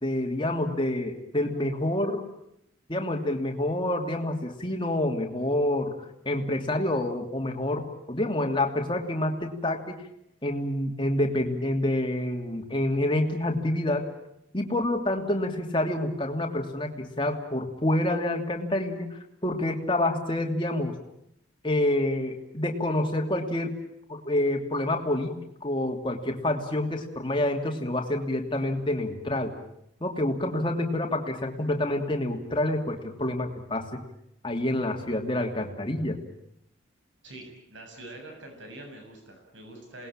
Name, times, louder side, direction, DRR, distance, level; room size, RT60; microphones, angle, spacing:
voice 1, 0.0-2.2 2.9-5.9 6.2-10.0 10.4-14.1 14.5-19.1 19.4-21.0 21.6-23.8 24.1-29.5 30.0-34.0 34.4-36.2, left 1 dB, 25° left, 3 dB, 2.8 m, -27 dB
voice 2, 37.2-40.1, right 1 dB, 70° right, 3 dB, 7.5 m, -45 dB
28.0 x 20.0 x 8.8 m, 0.78 s
head